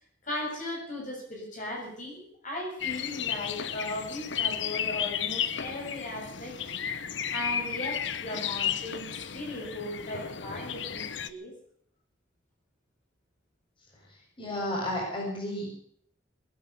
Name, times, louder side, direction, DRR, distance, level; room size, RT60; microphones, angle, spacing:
voice 1, 0.2-6.5 7.3-11.5, left 1 dB, 45° left, -2 dB, 7.2 m, -37 dB
sound 1, 2.8-11.3, left 9 dB, 70° left, 1.0 m, -33 dB
voice 2, 14.1-15.7, left 1 dB, 30° left, -3 dB, 7.1 m, -33 dB
21.5 x 10.0 x 6.8 m, 0.64 s
head